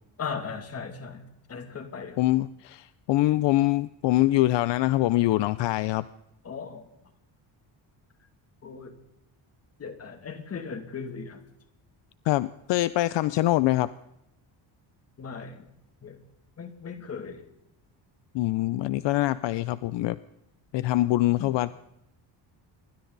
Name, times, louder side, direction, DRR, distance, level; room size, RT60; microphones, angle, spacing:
voice 1, 0.2-2.2 6.4-6.9 8.6-9.0 9.8-11.4 15.2-15.7 16.0-16.2 16.6-17.5 21.4-21.5, left 5 dB, 30° left, 6 dB, 2.7 m, -38 dB
voice 2, 2.2-6.1 12.3-13.9 18.3-20.2 20.7-21.7, left 16 dB, 65° left, 15 dB, 0.7 m, -24 dB
28.0 x 23.5 x 4.1 m, 0.85 s
cardioid pair, 160°, 46 cm